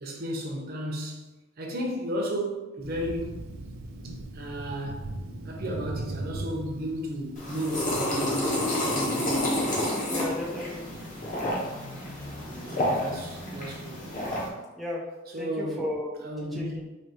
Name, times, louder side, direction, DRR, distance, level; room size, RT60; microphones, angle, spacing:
voice 1, 0.0-1.3 1.6-3.5 4.0-5.1 5.4-8.6 8.9-9.5 12.4-14.1 15.3-15.9 16.2-16.9, equal, 50° right, -1 dB, 0.8 m, -34 dB
Thunder, 2.8-8.5, right 2 dB, 85° right, 0.5 m, -38 dB
sound 1, 7.4-14.5, left 1 dB, 40° left, 1.1 m, -29 dB
voice 2, 10.1-10.9 14.8-15.0 15.4-16.2 16.5-16.8, left 1 dB, ahead, -4 dB, 0.4 m, -34 dB
4.4 x 3.0 x 3.0 m, 1.1 s
head